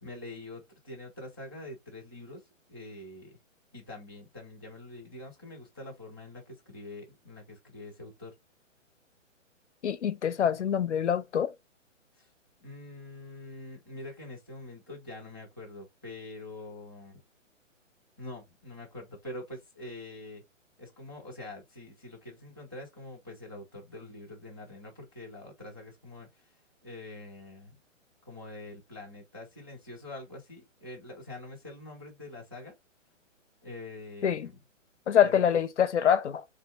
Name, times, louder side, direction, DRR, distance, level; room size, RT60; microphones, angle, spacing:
voice 1, 0.0-2.4 2.7-3.4 3.7-8.3 12.1-12.3 12.6-17.2 18.2-20.4 20.8-26.6 26.8-27.8 28.2-32.7 33.6-34.6 35.2-35.6, left 2 dB, 20° right, 0.4 m, -45 dB
voice 2, 9.8-11.5 34.2-34.5 35.1-36.5, left 9 dB, 60° left, 0.6 m, -25 dB
4.3 x 2.6 x 2.3 m
hypercardioid pair, 175°, 39 cm